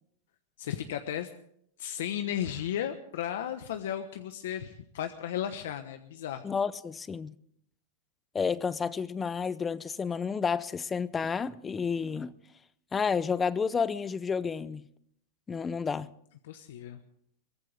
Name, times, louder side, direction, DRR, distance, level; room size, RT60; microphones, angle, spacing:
voice 1, 0.6-1.3 1.8-6.4 16.4-17.0, left 10 dB, 75° left, 1.1 m, -34 dB
voice 2, 6.4-7.3 8.3-12.3 12.9-14.9 15.5-16.1, left 6 dB, 15° left, 0.6 m, -30 dB
23.0 x 17.0 x 3.5 m
supercardioid pair, 145°, 0 cm